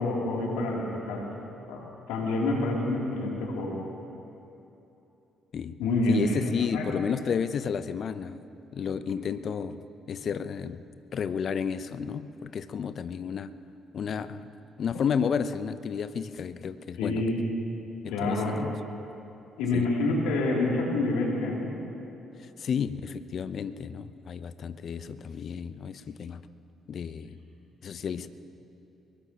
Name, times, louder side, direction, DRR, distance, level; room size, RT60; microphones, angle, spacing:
voice 1, 0.0-1.4 1.7-3.8 5.8-6.8 17.0-17.4 18.1-18.7 19.6-21.8 25.0-25.1, left 2 dB, 75° left, -3 dB, 2.9 m, -28 dB
voice 2, 6.1-8.4 8.7-9.8 10.1-10.8 11.1-13.5 13.9-14.5 14.8-17.2 18.0-18.8 19.7-19.9 22.4-26.4 26.9-27.4 27.8-28.3, left 7 dB, 55° left, 13 dB, 0.6 m, -32 dB
23.0 x 20.5 x 2.9 m, 2.9 s
hypercardioid pair, 45°, 0 cm